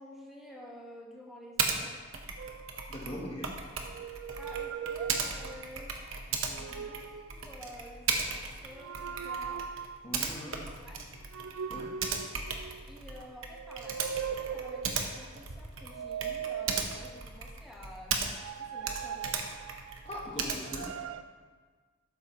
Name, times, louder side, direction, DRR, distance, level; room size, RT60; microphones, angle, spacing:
voice 1, 0.0-1.9 4.4-9.7 10.4-11.0 12.9-19.3, left 1 dB, ahead, -3 dB, 1.4 m, -50 dB
Typing, 1.6-1.8 2.1-18.6 18.8-21.0, right 5 dB, 70° right, 1.1 m, -36 dB
sound 1, 2.4-3.3 3.8-5.8 6.4-7.4 8.7-10.1 11.3-13.0 13.5-15.2 15.8-17.4 18.3-20.1 20.6-21.2, right 7 dB, 85° right, 0.4 m, -40 dB
voice 2, 2.9-3.5 10.0-10.8 11.7-11.9 20.0-20.9, left 1 dB, 30° left, -2 dB, 1.1 m, -40 dB
12.5 x 8.7 x 3.1 m, 1.5 s
head